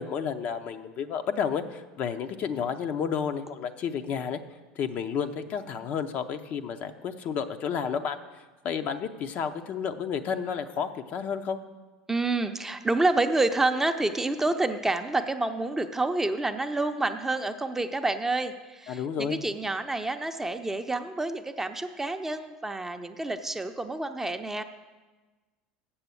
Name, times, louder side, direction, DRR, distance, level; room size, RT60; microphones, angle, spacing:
voice 1, 0.0-4.4 4.8-8.2 8.6-11.6 18.9-19.4, left 7 dB, 50° left, 8 dB, 0.6 m, -31 dB
voice 2, 12.1-24.6, right 2 dB, 10° right, 7 dB, 0.6 m, -28 dB
7.4 x 7.0 x 7.1 m, 1.3 s
hypercardioid pair, 90°, 3 cm